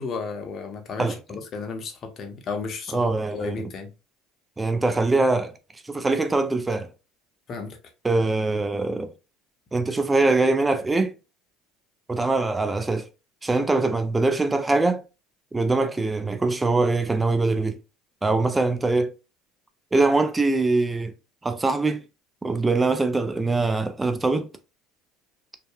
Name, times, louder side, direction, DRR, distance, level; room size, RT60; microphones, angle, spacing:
voice 1, 0.0-3.9 7.5-7.8, left 4 dB, 45° left, 0.7 m, -33 dB
voice 2, 2.9-3.5 4.6-6.9 8.0-9.1 9.7-11.1 12.1-13.1 13.4-15.0 15.5-17.8 18.2-19.1 19.9-21.1 21.4-22.0 22.4-24.5, right 3 dB, 15° right, 0.4 m, -23 dB
2.7 x 2.2 x 2.3 m
supercardioid pair, 85°, 0 cm